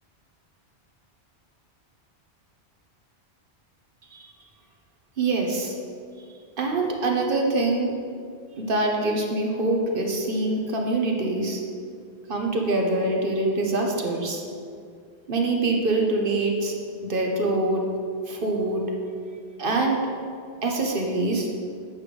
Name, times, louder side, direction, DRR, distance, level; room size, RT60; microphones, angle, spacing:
voice 1, 5.2-5.8 6.6-7.9 8.6-11.6 12.3-14.4 15.3-17.9 18.3-18.8 19.6-20.0 20.6-21.5, right 2 dB, 55° right, 1 dB, 1.1 m, -24 dB
8.1 x 5.1 x 5.1 m, 2.3 s
omnidirectional pair, 1.1 m